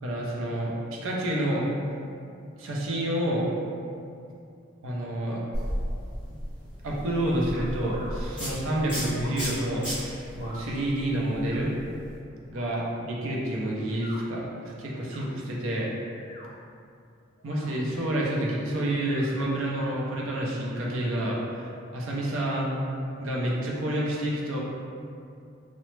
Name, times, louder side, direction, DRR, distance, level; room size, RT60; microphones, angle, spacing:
voice 1, 0.0-1.7 2.6-3.5 4.8-5.4 6.8-11.7 12.5-15.9 17.4-22.8 23.2-24.6, right 1 dB, 80° right, -3 dB, 0.5 m, -29 dB
sound 1, 5.5-12.2, equal, 5° right, 0.8 m, -35 dB
sound 2, 7.5-8.2 9.1-9.5 10.4-10.7 11.4-11.6 12.5-12.8 13.9-14.2 14.9-15.2 16.1-16.5 17.4-17.7 19.0-19.3, left 1 dB, 35° left, 0.3 m, -46 dB
2.9 x 2.0 x 3.1 m, 2.5 s
head